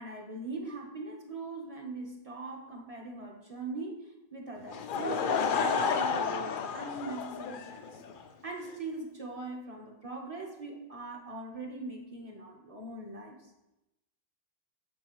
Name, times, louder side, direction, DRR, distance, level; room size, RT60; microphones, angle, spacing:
voice 1, 0.0-8.0 8.4-13.4, right 3 dB, 35° right, 0 dB, 1.1 m, -41 dB
Laughter / Crowd, 4.7-8.2, left 5 dB, 60° left, 0.7 m, -31 dB
8.7 x 6.8 x 3.1 m, 0.94 s
omnidirectional pair, 1.1 m